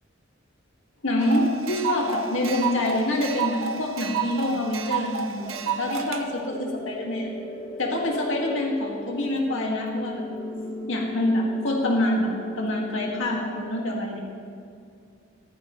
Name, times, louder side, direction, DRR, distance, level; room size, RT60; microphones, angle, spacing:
voice 1, 1.0-7.3 7.8-10.3 10.9-12.3 12.6-14.2, left 1 dB, 70° left, -1 dB, 2.1 m, -26 dB
sound 1, 1.2-6.2, right 6 dB, 90° right, 0.8 m, -30 dB
sound 2, 5.4-13.4, left 1 dB, 30° left, 2.4 m, -36 dB
14.5 x 14.0 x 3.2 m, 2.3 s
head